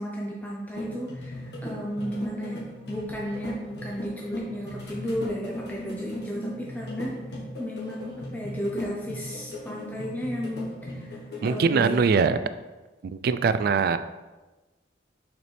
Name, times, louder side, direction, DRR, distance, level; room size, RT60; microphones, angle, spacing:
voice 1, 0.0-2.6 2.9-7.1 7.6-11.9 12.3-12.5, equal, 10° left, -3 dB, 0.5 m, -34 dB
sound 1, 0.7-11.6, left 1 dB, 60° left, 1.5 m, -38 dB
voice 2, 11.4-12.4 13.0-14.0, right 5 dB, 55° right, 12 dB, 0.3 m, -22 dB
6.6 x 4.5 x 3.3 m, 1.2 s
head